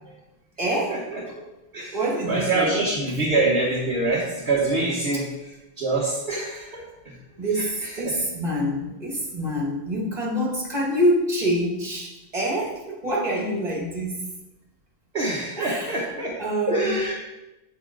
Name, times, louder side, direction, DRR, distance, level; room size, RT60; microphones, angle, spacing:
voice 1, 0.6-1.1 1.9-3.2 5.1-5.2 7.4-14.2 15.6-16.9, equal, 35° right, -2 dB, 2.1 m, -26 dB
voice 2, 2.3-5.2 5.8-6.8 7.8-8.1 15.1-16.3 16.7-17.1, right 2 dB, 55° right, -5 dB, 1.5 m, -25 dB
8.2 x 7.8 x 3.9 m, 1.0 s
omnidirectional pair, 1.2 m